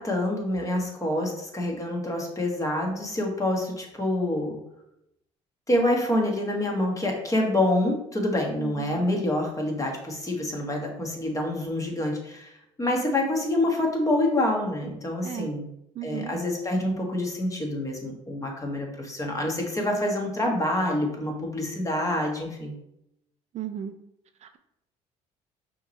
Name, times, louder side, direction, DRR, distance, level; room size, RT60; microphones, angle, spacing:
voice 1, 0.0-4.6 5.7-12.5 12.8-15.7 16.0-22.7, left 1 dB, 20° left, 1 dB, 1.4 m, -27 dB
voice 2, 8.6-9.1 15.2-15.5 16.0-16.3 23.5-23.9 24.4-24.6, right 11 dB, 50° right, 8 dB, 0.4 m, -35 dB
5.5 x 3.1 x 3.2 m, 0.82 s
supercardioid pair, 80°, 15 cm